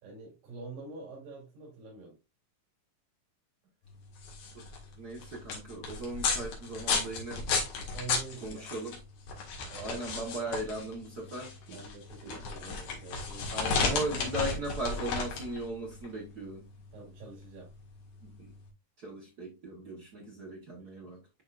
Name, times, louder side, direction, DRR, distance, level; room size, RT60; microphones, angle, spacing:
voice 1, 0.0-2.2 7.9-8.8 9.7-10.0 11.7-13.6 16.9-17.7 20.8-20.9, right 4 dB, 85° right, 4.6 m, -46 dB
sound 1, 4.0-18.6, left 4 dB, 85° left, 3.6 m, -34 dB
voice 2, 5.0-7.4 8.4-9.0 9.8-11.8 12.2-12.4 13.5-16.6 18.2-18.5 19.0-21.2, right 1 dB, 60° right, 1.0 m, -38 dB
11.5 x 3.8 x 2.5 m
omnidirectional pair, 4.0 m